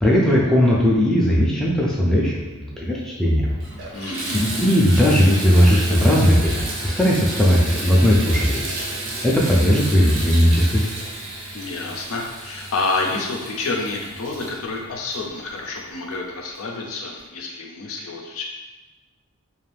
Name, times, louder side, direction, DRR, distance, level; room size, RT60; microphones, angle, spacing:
voice 1, 0.0-3.5 4.3-8.7 9.2-10.8, equal, 5° left, -5 dB, 0.3 m, -17 dB
Water tap faucet / Bathtub (filling or washing), 2.9-3.0 3.5-15.9 16.6-16.7 17.2-17.3, right 2 dB, 60° right, 0.6 m, -32 dB
voice 2, 3.9-4.4 11.5-18.4, left 3 dB, 75° left, -1 dB, 0.5 m, -28 dB
2.5 x 2.3 x 3.3 m, 1.2 s
head